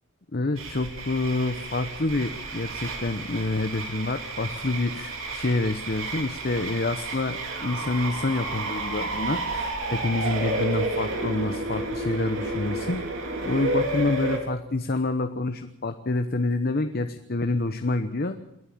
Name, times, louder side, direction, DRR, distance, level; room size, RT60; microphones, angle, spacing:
voice 1, 0.3-13.0 13.4-18.4, left 2 dB, 50° left, 8 dB, 1.0 m, -27 dB
sound 1, 0.6-14.4, right 2 dB, 85° right, 3.9 m, -31 dB
27.5 x 11.0 x 8.6 m, 0.81 s
head